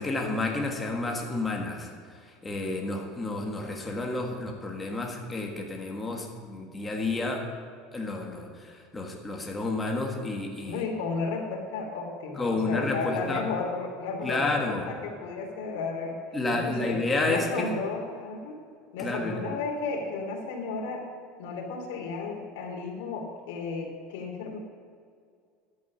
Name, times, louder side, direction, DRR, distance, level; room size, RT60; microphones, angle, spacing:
voice 1, 0.0-1.9 2.4-7.5 7.9-10.8 12.4-13.4 14.2-14.8 16.3-17.7 19.0-19.4, left 2 dB, 10° left, 1 dB, 1.6 m, -30 dB
voice 2, 10.7-16.1 16.5-18.6 18.9-21.0 21.4-24.6, left 4 dB, 75° left, -1 dB, 3.0 m, -33 dB
12.0 x 8.7 x 7.3 m, 2.2 s
cardioid pair, 175°, 0 cm